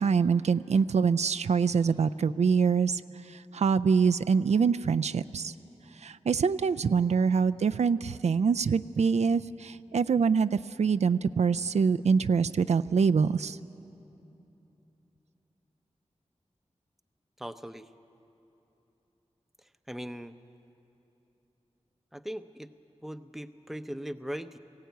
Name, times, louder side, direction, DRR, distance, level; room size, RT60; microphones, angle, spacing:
voice 1, 0.0-3.0 3.3-5.5 6.0-13.6, right 5 dB, 80° right, 11 dB, 0.4 m, -25 dB
voice 2, 17.4-17.9 19.9-20.3 22.1-22.7 23.0-24.6, equal, ahead, 10 dB, 0.6 m, -39 dB
19.5 x 16.0 x 9.3 m, 3.0 s
wide cardioid pair, 85°, 11 cm